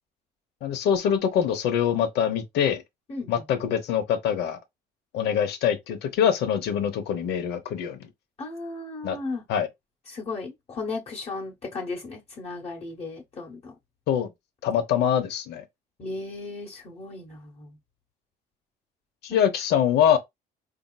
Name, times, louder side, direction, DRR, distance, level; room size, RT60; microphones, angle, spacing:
voice 1, 0.6-2.8 3.3-4.6 5.1-8.1 9.0-9.2 9.5-9.7 14.1-14.3 14.6-15.6 19.2-20.2, left 9 dB, 80° left, 0.9 m, -24 dB
voice 2, 3.1-3.4 8.4-9.4 10.1-13.7 16.0-17.8 19.3-19.4, left 3 dB, 40° left, 1.2 m, -35 dB
4.1 x 2.8 x 2.3 m
cardioid pair, 110°, 17 cm